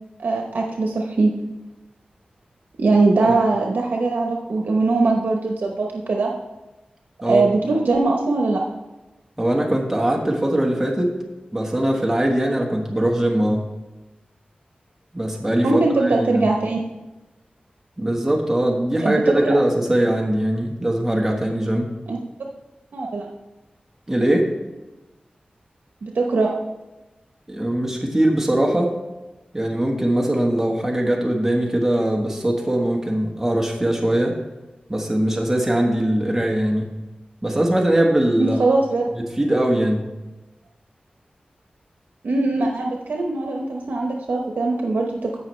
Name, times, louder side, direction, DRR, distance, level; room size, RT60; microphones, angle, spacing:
voice 1, 0.2-1.3 2.8-6.3 7.3-8.6 15.6-16.8 19.0-19.6 22.1-22.2 22.9-23.3 26.0-26.5 38.4-39.0 42.2-45.4, right 3 dB, 85° right, 1 dB, 0.8 m, -21 dB
voice 2, 9.4-11.1 11.5-13.6 15.1-16.4 18.0-21.9 24.1-24.5 27.5-28.9 29.5-34.4 34.9-36.9 37.4-38.6 39.2-40.0, right 1 dB, 10° right, 0 dB, 1.3 m, -21 dB
15.0 x 5.8 x 3.2 m, 1.1 s
wide cardioid pair, 80°, 3 cm